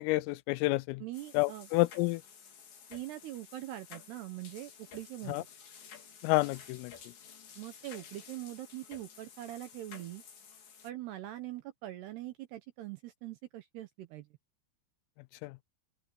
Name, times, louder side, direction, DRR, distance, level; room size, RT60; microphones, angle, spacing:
voice 1, 0.0-1.0 1.3-2.2 5.3-5.4 6.2-6.9 15.4-15.6, left 22 dB, 85° left, 3.2 m, -29 dB
voice 2, 1.0-1.7 2.9-5.5 7.6-10.2 10.8-14.3, right 15 dB, 75° right, 2.5 m, -43 dB
sound 1, 1.1-10.9, left 7 dB, 60° left, 5.9 m, -53 dB
open air
omnidirectional pair, 5.9 m